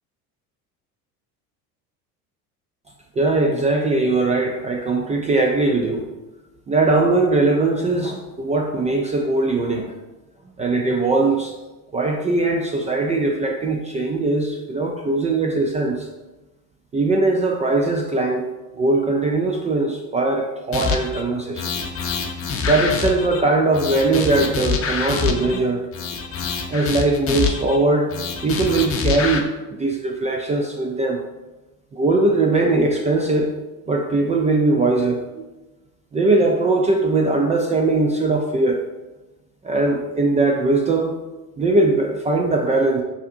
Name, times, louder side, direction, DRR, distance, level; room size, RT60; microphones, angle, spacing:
voice 1, 3.2-6.1 6.7-9.9 10.6-11.5 11.9-16.1 16.9-21.7 22.7-25.8 26.7-28.1 28.4-31.2 31.9-33.5 33.9-35.2 36.1-38.8 39.6-41.1 41.6-43.0, right 2 dB, 15° right, 1 dB, 0.3 m, -20 dB
sound 1, 20.7-21.2 21.6-23.4 23.7-25.6 25.9-27.8 28.1-29.4, left 6 dB, 30° left, 0.7 m, -25 dB
6.9 x 2.8 x 2.6 m, 1.1 s
hypercardioid pair, 75°, 46 cm